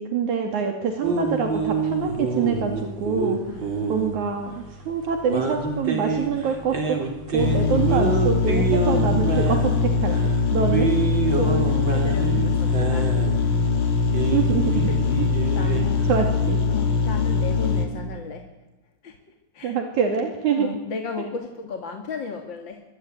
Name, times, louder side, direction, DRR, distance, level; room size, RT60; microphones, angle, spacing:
voice 1, 0.0-3.4 3.9-7.0 7.3-10.9 14.3-14.9 15.7-16.6 19.6-20.7, right 6 dB, 70° right, 4 dB, 3.7 m, -25 dB
sound 1, 1.0-16.5, right 4 dB, 40° right, 4.1 m, -28 dB
voice 2, 3.5-4.0 8.9-9.1 10.5-10.6 11.3-13.4 14.9-15.3 15.5-16.1 16.7-18.5 19.0-19.2 19.5-19.8 20.5-22.8, left 5 dB, 40° left, 4 dB, 2.4 m, -34 dB
sound 2, 7.4-17.9, left 4 dB, 70° left, 5.2 m, -22 dB
24.5 x 23.0 x 9.4 m, 1.0 s
omnidirectional pair, 3.5 m